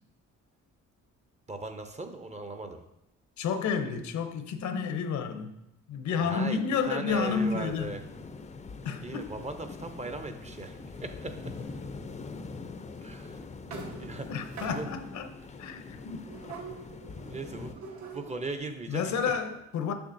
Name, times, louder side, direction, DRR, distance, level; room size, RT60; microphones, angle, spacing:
voice 1, 1.5-2.8 6.1-6.6 6.9-8.0 9.0-11.5 13.0-13.4 14.0-14.9 17.3-19.4, right 2 dB, 25° right, 7 dB, 0.6 m, -38 dB
voice 2, 3.4-5.6 5.9-7.9 8.8-9.3 14.3-15.3 15.6-16.4 18.9-19.9, left 6 dB, 70° left, 8 dB, 0.7 m, -31 dB
sound 1, 7.1-17.7, left 4 dB, 25° left, 0.4 m, -43 dB
sound 2, 10.4-11.9 12.6-12.7 13.1-13.3 13.7-15.2 16.2-18.5, right 4 dB, 65° right, 1.1 m, -45 dB
6.9 x 5.4 x 2.6 m, 0.84 s
cardioid pair, 90°, 30 cm